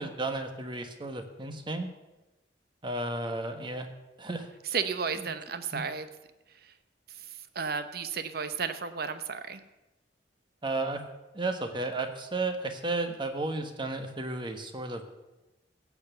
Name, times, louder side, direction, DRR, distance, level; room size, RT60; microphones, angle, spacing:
voice 1, 0.0-1.9 2.8-3.9 4.2-4.5 5.2-5.3 5.7-5.8 10.6-11.0 11.3-15.1, right 2 dB, 25° right, 7 dB, 1.3 m, -33 dB
voice 2, 4.7-6.1 7.5-9.6, right 5 dB, 60° right, 11 dB, 0.9 m, -33 dB
16.0 x 7.2 x 6.9 m, 1.0 s
head